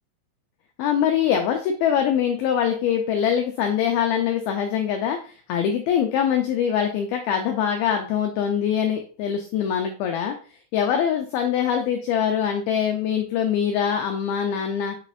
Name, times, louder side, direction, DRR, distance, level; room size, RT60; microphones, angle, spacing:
voice 1, 0.8-10.4 10.7-15.0, left 8 dB, 85° left, 4 dB, 2.1 m, -23 dB
7.5 x 4.9 x 2.6 m, 0.39 s
omnidirectional pair, 5.1 m